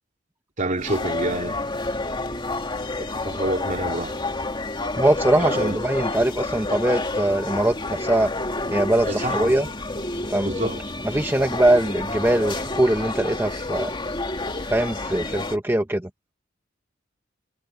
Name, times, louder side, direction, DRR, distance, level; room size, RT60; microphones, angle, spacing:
voice 1, 0.6-1.6 3.0-4.2 5.3-5.8 9.1-9.5 10.4-10.8, right 1 dB, 40° right, 3.0 m, -28 dB
sound 1, 0.8-15.6, left 2 dB, 25° left, 2.6 m, -29 dB
voice 2, 4.9-8.3 8.7-9.7 10.3-10.7 11.0-13.9 14.7-16.1, right 1 dB, 10° right, 1.0 m, -22 dB
head